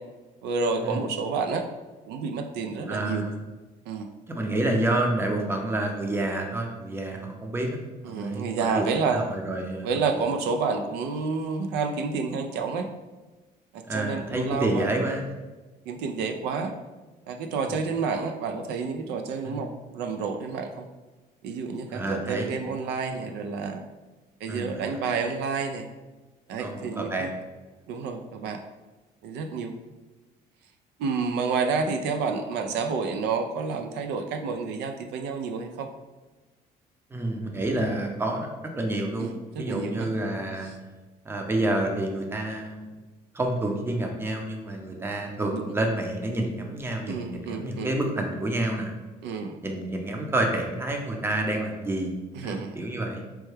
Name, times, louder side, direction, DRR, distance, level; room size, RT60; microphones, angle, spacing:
voice 1, 0.4-1.6 2.1-3.2 3.9-4.1 8.0-9.2 9.8-12.9 13.7-14.9 15.9-16.7 17.3-19.7 19.9-20.9 21.4-23.8 24.4-25.9 26.5-27.3 27.9-28.6 29.2-29.8 31.0-35.9 39.2-40.1 45.5-45.7 47.1-48.0 49.2-49.5 52.3-52.8, right 5 dB, 85° right, 6 dB, 0.4 m, -29 dB
voice 2, 2.9-3.4 4.3-7.8 8.0-10.2 13.9-15.2 19.5-19.7 21.9-22.5 24.5-24.9 26.6-27.3 37.1-38.5 38.8-39.3 39.6-40.7 41.2-42.9 43.3-48.9 49.6-52.1 52.4-53.2, right 1 dB, 15° right, 2 dB, 0.5 m, -29 dB
4.5 x 2.2 x 3.2 m, 1.2 s
cardioid pair, 110°, 17 cm